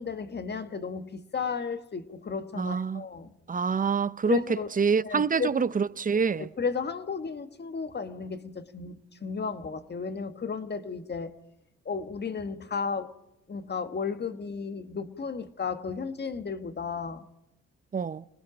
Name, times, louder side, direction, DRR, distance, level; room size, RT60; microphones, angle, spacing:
voice 1, 0.0-3.3 4.2-4.7 5.0-5.7 6.3-11.4 11.8-13.1 13.5-17.2, left 5 dB, 35° left, 1.6 m, -34 dB
voice 2, 2.6-3.0 3.5-4.4 4.8-6.5 17.9-18.3, right 6 dB, 30° right, 0.7 m, -26 dB
27.0 x 19.5 x 5.1 m
cardioid pair, 90°, 30 cm